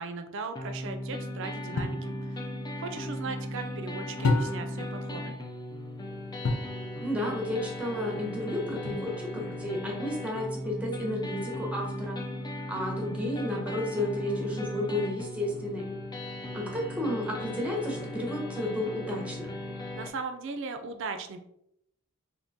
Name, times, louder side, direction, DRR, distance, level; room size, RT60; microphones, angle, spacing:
voice 1, 0.0-2.4 2.8-5.3 20.0-21.4, right 4 dB, 60° right, 7 dB, 0.4 m, -38 dB
sound 1, 0.6-20.1, left 1 dB, 20° left, 0.3 m, -37 dB
sound 2, 1.8-2.1 4.2-4.9 6.4-6.8 8.8-9.4, left 2 dB, 85° left, 0.5 m, -29 dB
voice 2, 7.0-12.2 12.7-15.9 16.5-19.5, left 1 dB, 5° right, -1 dB, 0.7 m, -32 dB
3.6 x 2.7 x 2.7 m, 0.77 s
head